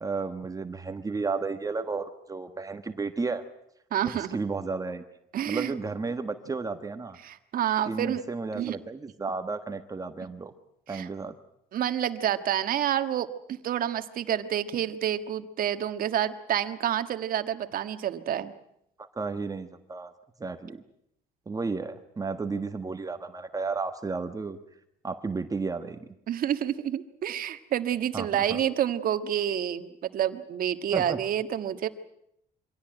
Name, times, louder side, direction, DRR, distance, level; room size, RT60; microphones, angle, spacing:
voice 1, 0.0-3.4 4.0-5.0 5.5-7.2 7.8-10.5 10.9-11.4 19.0-20.1 20.4-20.8 21.5-24.6 25.0-26.0 28.1-28.6 30.9-31.2, right 4 dB, 20° right, 8 dB, 1.4 m, -33 dB
voice 2, 3.9-4.4 5.3-5.7 7.2-8.2 8.5-8.8 10.9-11.1 11.7-18.5 26.3-31.9, right 10 dB, 60° right, 10 dB, 1.6 m, -28 dB
24.5 x 17.0 x 9.0 m, 0.77 s
cardioid pair, 110°, 17 cm